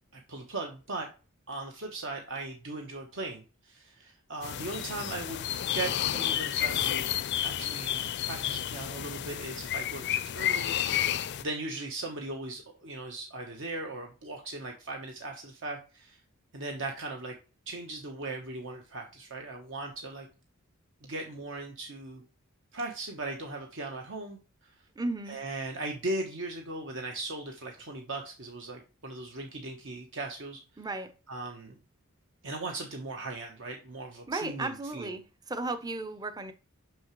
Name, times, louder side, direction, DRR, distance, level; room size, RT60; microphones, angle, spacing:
voice 1, 0.1-1.1 1.5-5.4 5.7-7.2 7.4-11.1 11.4-16.2 16.5-17.4 17.7-20.3 21.0-22.2 22.7-24.7 25.3-30.6 31.3-31.8 32.4-35.1, right 2 dB, 60° right, 1.0 m, -38 dB
sound 1, 4.4-11.4, left 11 dB, 50° left, 0.4 m, -31 dB
voice 2, 25.0-25.4 30.8-31.1 34.3-35.2 35.5-36.5, right 2 dB, 20° right, 0.6 m, -34 dB
6.1 x 5.9 x 3.0 m
head